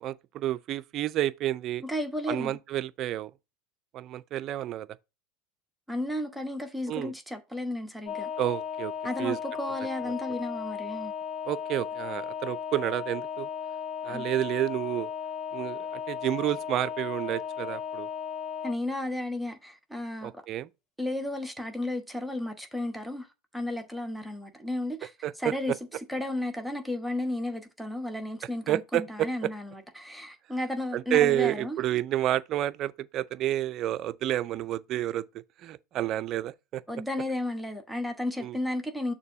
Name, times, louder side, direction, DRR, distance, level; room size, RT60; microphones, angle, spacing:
voice 1, 0.0-1.8 2.3-3.3 3.9-4.9 6.9-7.1 8.4-8.9 9.2-9.4 11.5-13.5 14.0-15.1 15.5-18.1 20.2-20.7 25.2-25.5 28.7-29.3 30.9-35.2 35.6-36.8 38.4-38.6, right 13 dB, 45° right, 0.4 m, -29 dB
voice 2, 1.8-2.5 5.9-8.3 9.0-11.1 14.1-14.3 18.6-20.3 21.0-23.3 23.5-25.7 26.1-31.8 36.9-39.1, left 1 dB, ahead, 1.0 m, -33 dB
sound 1, 8.0-18.8, left 8 dB, 30° left, 1.9 m, -36 dB
6.6 x 2.7 x 5.6 m
hypercardioid pair, 95°, 0 cm